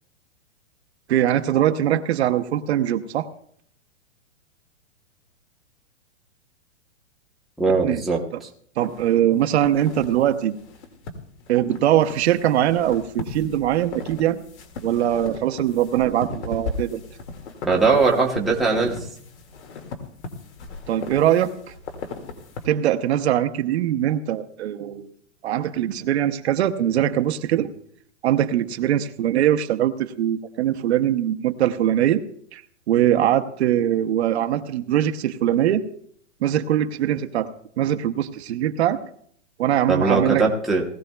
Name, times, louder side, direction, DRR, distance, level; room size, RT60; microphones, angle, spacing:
voice 1, 1.1-3.3 7.8-8.0 8.8-10.5 11.5-14.4 14.8-17.0 20.9-21.5 22.6-25.1 25.4-27.7 28.2-32.2 32.5-32.6 32.9-35.8 36.4-37.5 37.8-39.0 39.6-40.4, right 11 dB, 60° right, 8 dB, 0.9 m, -21 dB
voice 2, 7.6-8.5 17.7-19.1 39.9-40.8, right 4 dB, ahead, -3 dB, 0.9 m, -20 dB
sound 1, 8.8-22.7, left 3 dB, 60° left, 2.1 m, -37 dB
19.5 x 15.0 x 2.3 m, 0.63 s
hypercardioid pair, 150°, 38 cm